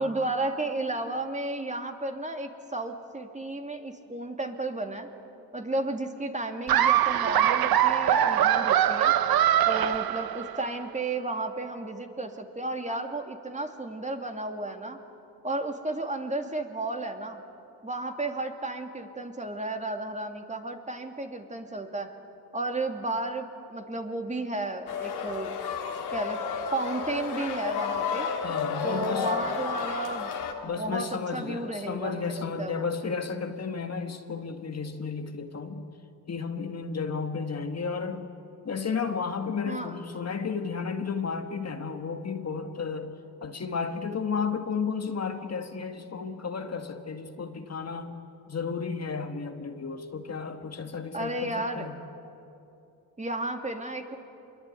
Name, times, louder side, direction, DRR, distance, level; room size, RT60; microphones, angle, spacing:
voice 1, 0.0-5.1 5.5-9.1 9.7-15.0 15.4-17.4 17.8-22.1 22.5-25.5 26.1-26.4 26.7-28.3 28.8-30.3 30.6-32.9 39.6-39.9 51.1-51.9 53.2-54.2, right 2 dB, 20° right, 4 dB, 2.7 m, -33 dB
Laughter, 6.7-10.7, right 10 dB, 65° right, 1.2 m, -23 dB
sound 1, 24.9-30.5, left 6 dB, 75° left, 3.2 m, -32 dB
voice 2, 28.4-29.3 30.6-35.9 36.3-38.3 38.6-43.1 43.4-48.2 48.5-52.0, left 5 dB, 40° left, 6 dB, 2.0 m, -33 dB
26.0 x 22.5 x 9.4 m, 2.7 s
cardioid pair, 75°, 39 cm